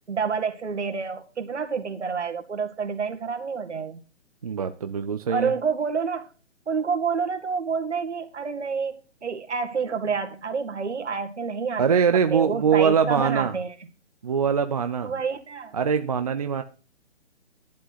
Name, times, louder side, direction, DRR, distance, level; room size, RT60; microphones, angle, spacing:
voice 1, 0.1-4.0 5.3-6.3 6.7-13.7 15.0-15.8, right 5 dB, 70° right, 6 dB, 2.1 m, -28 dB
voice 2, 4.4-5.5 11.8-13.6 14.2-15.1 15.7-16.6, right 6 dB, 30° right, 8 dB, 0.6 m, -23 dB
11.5 x 8.7 x 4.1 m, 0.36 s
figure-of-eight pair, 150°, 36 cm